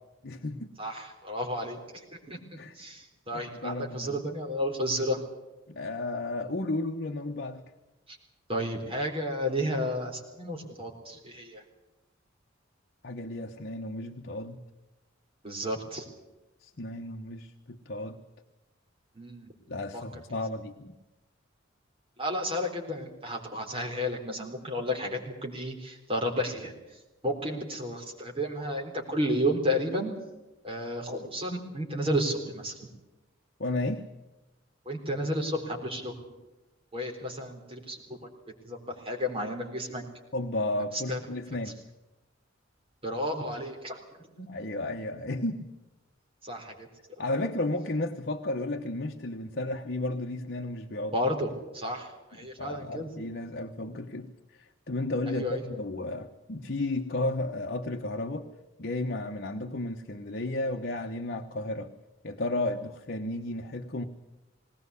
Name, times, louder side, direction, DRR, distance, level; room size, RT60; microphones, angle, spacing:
voice 1, 0.2-0.7 2.6-2.7 3.3-4.2 5.7-7.6 13.0-14.6 16.6-18.2 19.7-21.0 33.6-34.0 40.3-41.8 44.5-45.7 47.2-51.1 52.6-58.5 58.8-61.9 62.2-64.0, left 2 dB, 55° left, 3 dB, 1.1 m, -33 dB
voice 2, 0.8-5.2 8.1-8.2 8.5-11.6 15.4-16.0 19.1-19.5 19.9-20.0 22.2-26.7 27.2-30.1 30.6-32.9 34.9-36.2 36.9-38.3 38.6-40.0 40.9-41.2 43.0-44.0 44.4-44.7 46.4-46.9 51.1-53.1 55.3-55.6, equal, 30° right, 1 dB, 3.9 m, -32 dB
20.0 x 18.5 x 8.3 m, 1.0 s
head